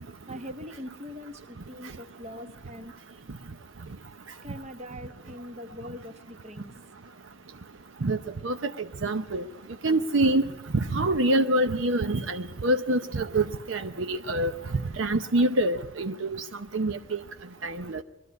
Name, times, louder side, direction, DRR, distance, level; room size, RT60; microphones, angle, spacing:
voice 1, 0.3-2.9 4.4-6.7, left 1 dB, 35° right, 8 dB, 1.2 m, -42 dB
voice 2, 9.0-9.4 9.8-10.4 10.9-14.5 15.0-16.3 16.7-17.2 17.6-18.0, right 1 dB, 70° right, 9 dB, 0.7 m, -25 dB
22.5 x 12.5 x 9.5 m, 1.0 s
head